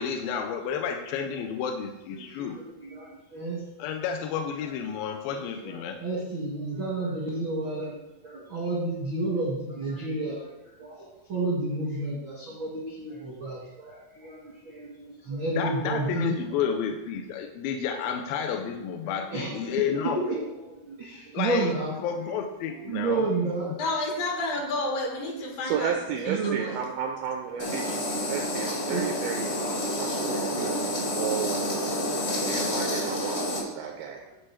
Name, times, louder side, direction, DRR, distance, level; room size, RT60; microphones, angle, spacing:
voice 1, 0.0-2.6 3.8-6.0 15.6-20.2 21.3-21.8 22.0-23.2, left 7 dB, 80° left, 4 dB, 2.2 m, -31 dB
voice 2, 2.2-3.6 4.0-4.1 5.3-16.6 18.0-18.2 19.0-22.0 22.7-23.7 24.9-25.0 25.3-25.8 26.3-26.8 27.5-29.3 30.1-31.6 32.7-34.4, right 3 dB, 60° right, -5 dB, 1.3 m, -32 dB
voice 3, 23.8-25.9 26.2-26.8, left 2 dB, 65° left, 0 dB, 3.0 m, -30 dB
voice 4, 25.6-28.0 28.3-31.6 32.5-34.3, right 8 dB, 80° right, 4 dB, 2.2 m, -33 dB
sound 1, 27.6-33.6, left 1 dB, 40° left, 1.4 m, -29 dB
12.0 x 4.7 x 4.5 m, 0.97 s
omnidirectional pair, 4.7 m